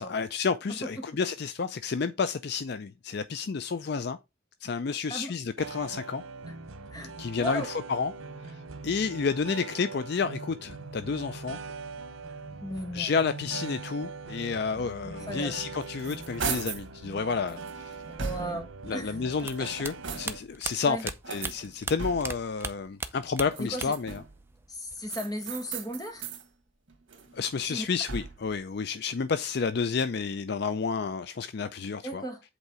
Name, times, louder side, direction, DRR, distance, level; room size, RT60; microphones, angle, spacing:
voice 1, 0.0-4.2 4.6-6.2 7.2-8.1 8.5-8.6 8.8-11.6 12.9-18.0 18.4-18.6 18.9-24.2 27.3-32.2, left 5 dB, 55° left, 0.4 m, -30 dB
voice 2, 0.7-1.0 5.1-5.3 6.9-7.7 12.6-13.1 15.0-15.6 18.2-19.2 19.6-19.7 20.8-21.1 23.6-23.9 24.7-26.2 27.6-27.9 32.0-32.4, right 1 dB, 20° left, 1.8 m, -36 dB
sound 1, 5.6-20.4, right 4 dB, 90° right, 1.0 m, -42 dB
sound 2, 15.8-16.9 17.5-18.8 19.4-20.6 21.2-22.5 23.4-24.4 25.1-26.5 26.9-28.5, right 5 dB, 65° right, 1.7 m, -38 dB
sound 3, 19.4-22.3 22.6-24.1 24.4-25.1, right 3 dB, 10° right, 0.6 m, -36 dB
8.1 x 4.1 x 4.8 m
head